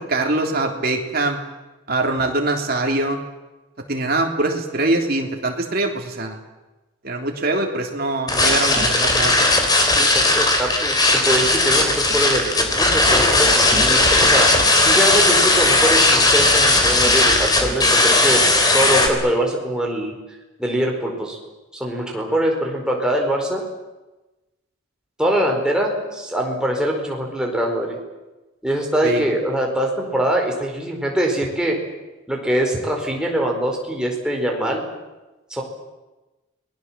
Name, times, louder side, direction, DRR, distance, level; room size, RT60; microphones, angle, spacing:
voice 1, 0.1-1.4 1.9-3.2 3.9-6.4 7.0-9.4 29.0-29.3, right 2 dB, 45° right, 2 dB, 3.3 m, -23 dB
sound 1, 8.3-19.1, left 2 dB, 20° left, 3.4 m, -17 dB
voice 2, 9.9-14.5 14.8-18.4 18.7-20.1 20.6-21.4 21.8-23.6 25.2-28.0 28.6-31.8 32.3-34.8 35.5-35.6, right 1 dB, 5° right, 0 dB, 4.6 m, -23 dB
30.0 x 20.5 x 7.5 m, 1.1 s
head